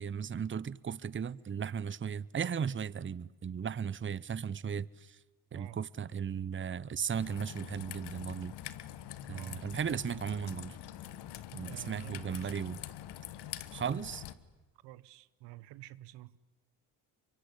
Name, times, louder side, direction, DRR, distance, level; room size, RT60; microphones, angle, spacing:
voice 1, 0.0-5.2 5.5-8.5 9.3-10.8 11.5-12.8 13.7-14.2, right 7 dB, 30° right, 0.9 m, -36 dB
Raindrop / Trickle dribble, 7.1-14.3, left 12 dB, 75° left, 1.7 m, -45 dB
voice 2, 9.3-9.6 11.6-12.7 14.8-16.4, right 16 dB, 85° right, 1.0 m, -49 dB
24.0 x 23.5 x 10.0 m
supercardioid pair, 70°, 40 cm